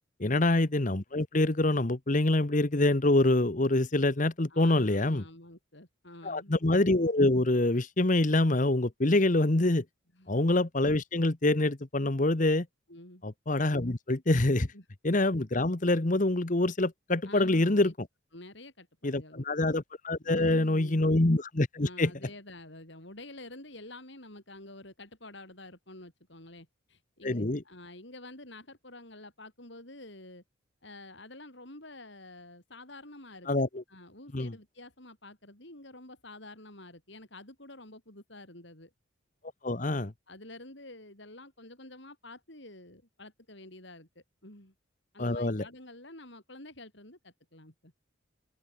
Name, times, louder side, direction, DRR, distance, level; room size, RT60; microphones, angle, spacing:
voice 1, 0.2-5.2 6.2-9.8 10.3-12.7 13.2-14.7 15.0-17.9 19.0-22.1 27.2-27.6 33.5-33.8 34.3-34.5 39.6-40.1 45.2-45.6, left 2 dB, 40° left, 1.1 m, -26 dB
voice 2, 4.5-6.6 10.2-10.3 12.9-13.2 14.7-14.9 17.2-17.9 18.3-19.7 20.2-21.2 21.8-30.4 30.8-33.5 33.9-38.9 39.8-44.7 45.1-47.9, left 2 dB, 60° left, 7.1 m, -49 dB
open air
head